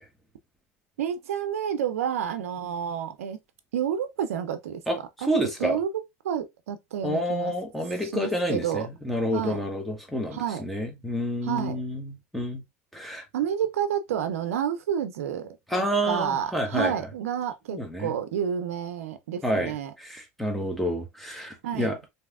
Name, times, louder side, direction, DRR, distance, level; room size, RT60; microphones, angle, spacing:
voice 1, 1.0-3.4 3.7-4.8 5.2-5.9 6.2-7.5 8.0-8.9 9.3-9.6 10.3-10.6 11.4-11.8 13.3-19.9 21.6-21.9, right 9 dB, 90° right, 0.4 m, -30 dB
voice 2, 4.9-5.8 7.0-12.6 12.9-13.2 15.7-16.9 17.7-18.1 19.4-22.0, equal, ahead, 1.1 m, -29 dB
3.3 x 2.7 x 2.3 m
hypercardioid pair, 90°, 7 cm